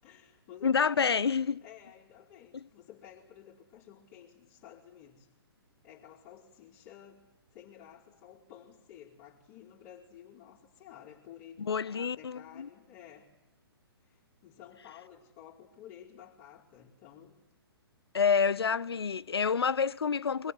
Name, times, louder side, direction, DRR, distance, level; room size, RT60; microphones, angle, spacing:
voice 1, 0.0-1.3 1.6-5.3 5.8-13.3 14.0-17.3 18.8-19.1, left 10 dB, 35° left, 4.7 m, -53 dB
voice 2, 0.6-1.6 2.5-2.6 11.6-12.7 18.1-20.5, left 6 dB, 75° left, 0.9 m, -28 dB
25.0 x 22.0 x 9.9 m
figure-of-eight pair, 130°, 13 cm